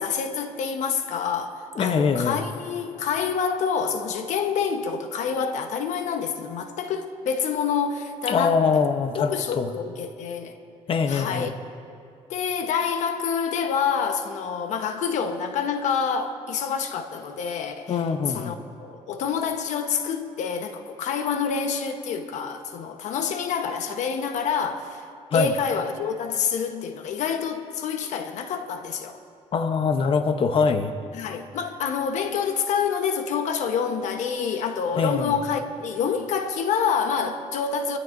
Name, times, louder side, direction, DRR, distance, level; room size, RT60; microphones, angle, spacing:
voice 1, 0.0-8.6 9.1-10.6 11.1-11.6 12.3-18.0 18.3-25.0 25.3-29.2 31.1-38.0, left 6 dB, 85° left, 1.1 m, -27 dB
voice 2, 1.8-2.4 8.3-9.7 10.9-11.5 17.9-18.6 25.3-25.5 29.5-30.9 34.9-35.4, left 5 dB, 50° left, 0.8 m, -23 dB
25.0 x 14.0 x 2.6 m
cardioid pair, 125°, 12 cm